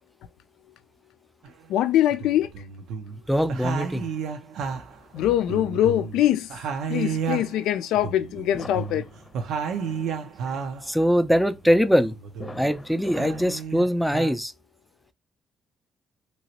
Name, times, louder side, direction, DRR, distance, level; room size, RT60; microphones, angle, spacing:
sound 1, 1.4-1.5 2.1-3.2 3.5-6.2 6.5-10.9 11.3-12.7 13.0-14.3, right 6 dB, 85° right, 0.6 m, -32 dB
voice 1, 1.7-2.5 5.1-6.5 6.9-9.1, left 12 dB, 90° left, 0.3 m, -23 dB
voice 2, 3.3-4.1 10.9-12.1 12.6-14.5, equal, ahead, 0.4 m, -22 dB
sound 2, 4.6-13.6, left 2 dB, 20° left, 0.9 m, -45 dB
3.0 x 2.9 x 2.9 m
cardioid pair, 90°, 0 cm